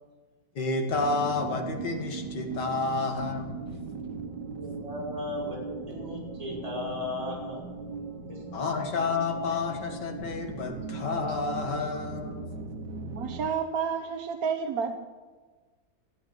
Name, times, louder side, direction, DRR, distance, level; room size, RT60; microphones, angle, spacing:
voice 1, 0.6-3.6 8.5-12.5, left 3 dB, 85° left, 4 dB, 2.3 m, -30 dB
sound 1, 0.9-13.5, right 4 dB, 90° right, 1.7 m, -39 dB
voice 2, 4.6-7.6 8.3-8.6, left 2 dB, 20° right, -6 dB, 5.2 m, -36 dB
voice 3, 13.1-15.0, right 6 dB, 65° right, 5 dB, 1.3 m, -30 dB
15.5 x 8.8 x 7.2 m, 1.3 s
omnidirectional pair, 1.8 m